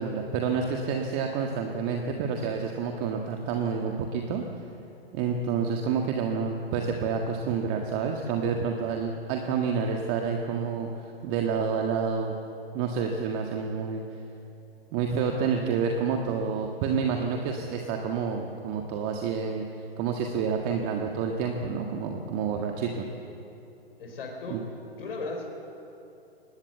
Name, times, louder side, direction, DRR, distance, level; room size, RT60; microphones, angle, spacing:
voice 1, 0.0-4.4 5.1-12.4 12.7-14.0 14.9-23.0 24.5-24.6, right 6 dB, 35° right, 2 dB, 1.8 m, -29 dB
voice 2, 23.9-24.7 25.0-25.4, left 3 dB, 60° left, 1 dB, 4.2 m, -36 dB
20.0 x 19.5 x 7.9 m, 2.8 s
figure-of-eight pair, 115°, 31 cm